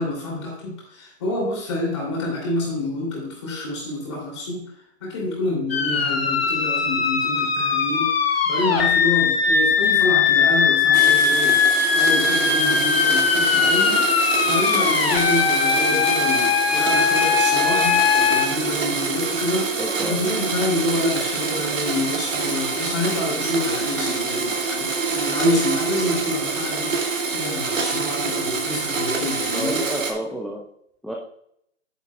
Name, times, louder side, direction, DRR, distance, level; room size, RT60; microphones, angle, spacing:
voice 1, 0.0-4.7 5.0-11.6 11.9-29.8, left 2 dB, 20° left, -2 dB, 2.9 m, -27 dB
sound 1, 5.7-18.5, left 6 dB, 55° left, 1.4 m, -20 dB
Domestic sounds home sounds, 10.9-30.1, right 4 dB, 85° right, 2.3 m, -26 dB
voice 2, 19.6-20.3 29.5-30.6 31.0-31.1, right 1 dB, ahead, -2 dB, 0.3 m, -30 dB
10.0 x 9.6 x 2.3 m, 0.71 s
hypercardioid pair, 180°, 38 cm